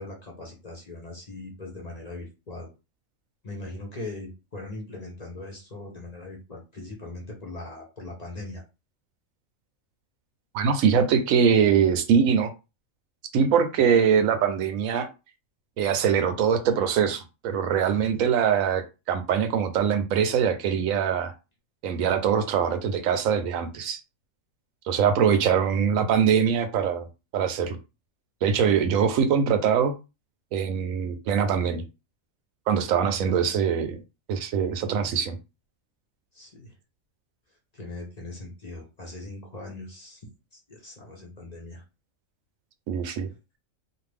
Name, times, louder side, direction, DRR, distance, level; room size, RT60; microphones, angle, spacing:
voice 1, 0.0-2.7 3.4-8.6 17.9-18.2 33.0-33.6 36.3-36.7 37.7-40.2 40.5-41.8, left 2 dB, 35° left, 0 dB, 0.8 m, -40 dB
voice 2, 10.5-12.5 13.3-15.1 15.8-21.3 21.8-24.0 24.9-27.1 27.3-27.8 28.4-29.9 30.5-31.8 32.7-34.0 34.3-35.4 42.9-43.3, right 7 dB, 85° right, 9 dB, 1.0 m, -23 dB
2.5 x 2.5 x 3.3 m, 0.28 s
omnidirectional pair, 1.4 m